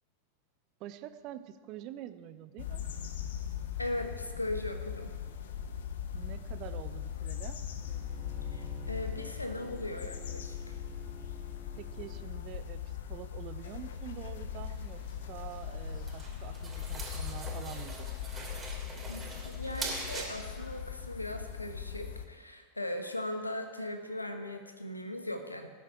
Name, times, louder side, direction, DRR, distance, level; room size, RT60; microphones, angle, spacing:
voice 1, 0.8-2.8 6.1-7.6 11.8-15.0 15.3-18.2, right 12 dB, 40° right, 12 dB, 0.7 m, -46 dB
sound 1, 2.6-22.2, left 8 dB, 60° left, 0.9 m, -40 dB
voice 2, 3.8-5.1 8.5-10.6 19.1-25.7, left 1 dB, 85° left, 6 dB, 1.2 m, -38 dB
Bowed string instrument, 7.8-12.3, right 2 dB, ahead, 2.4 m, -52 dB
sound 2, 14.7-20.3, right 3 dB, 15° right, 3.2 m, -43 dB
18.5 x 9.4 x 4.4 m, 1.5 s
figure-of-eight pair, 90°, 0 cm